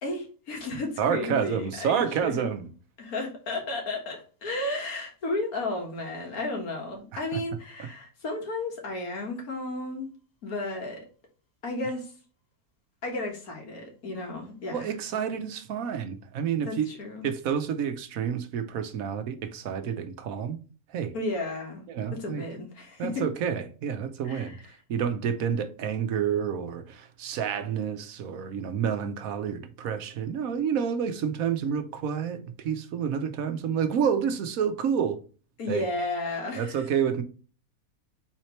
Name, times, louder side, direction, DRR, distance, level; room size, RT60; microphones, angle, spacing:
voice 1, 0.0-2.4 3.0-10.1 10.4-11.0 11.6-12.1 13.0-14.9 16.7-17.3 21.1-23.3 24.2-24.6 35.6-36.9, left 2 dB, 85° left, 2.0 m, -33 dB
voice 2, 1.0-2.7 7.3-7.4 7.8-7.9 14.7-16.9 17.2-20.6 20.9-21.1 21.9-22.4 23.0-24.6 24.9-35.2 35.7-35.8 36.6-37.2, right 7 dB, 80° right, 1.1 m, -29 dB
4.3 x 4.0 x 3.0 m
omnidirectional pair, 1.5 m